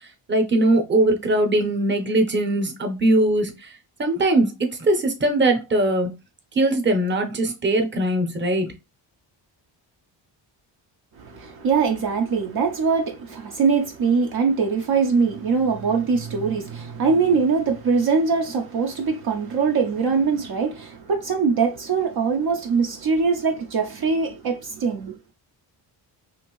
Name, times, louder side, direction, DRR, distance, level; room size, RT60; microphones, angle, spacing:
voice 1, 0.3-3.5 4.0-4.5 4.8-6.1 6.6-8.7, right 1 dB, 25° right, 0.8 m, -20 dB
voice 2, 11.2-25.2, right 5 dB, 55° right, 0.6 m, -22 dB
2.8 x 2.6 x 3.0 m
cardioid pair, 95°, 44 cm